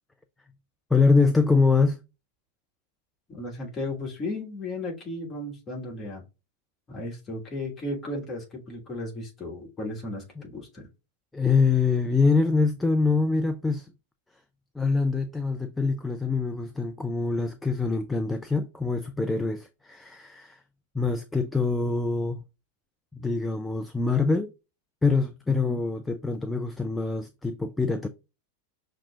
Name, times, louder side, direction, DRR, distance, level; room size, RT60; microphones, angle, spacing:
voice 1, 0.9-2.0 10.4-10.5 11.3-13.9 14.7-20.6 20.9-22.4 23.1-24.5 25.0-28.1, left 4 dB, 5° left, 0.3 m, -24 dB
voice 2, 3.3-6.2 6.9-10.9 25.7-25.8, left 2 dB, 25° left, 1.4 m, -35 dB
5.8 x 2.8 x 2.3 m
figure-of-eight pair, 90°, 0 cm